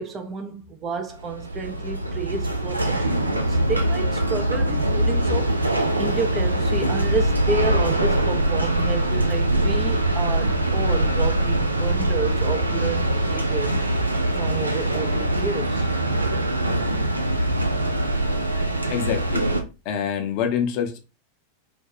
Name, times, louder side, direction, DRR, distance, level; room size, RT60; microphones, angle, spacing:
voice 1, 0.0-5.5 6.0-13.8 14.3-15.9, right 4 dB, 25° right, 0.4 m, -30 dB
sound 1, 1.1-19.6, right 1 dB, 85° right, 0.4 m, -23 dB
voice 2, 18.9-19.4 19.9-21.0, left 8 dB, 45° left, 0.5 m, -25 dB
2.5 x 2.2 x 2.8 m
figure-of-eight pair, 90°, 0 cm